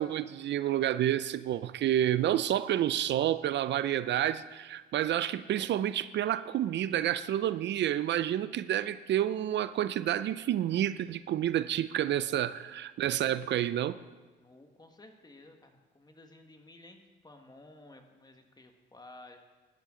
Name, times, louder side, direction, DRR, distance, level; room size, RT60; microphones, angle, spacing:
voice 1, 0.0-14.0, right 11 dB, 65° right, 15 dB, 0.4 m, -29 dB
voice 2, 14.4-19.4, left 2 dB, 20° left, 5 dB, 1.6 m, -54 dB
17.5 x 11.5 x 3.8 m, 1.3 s
cardioid pair, 90°, 20 cm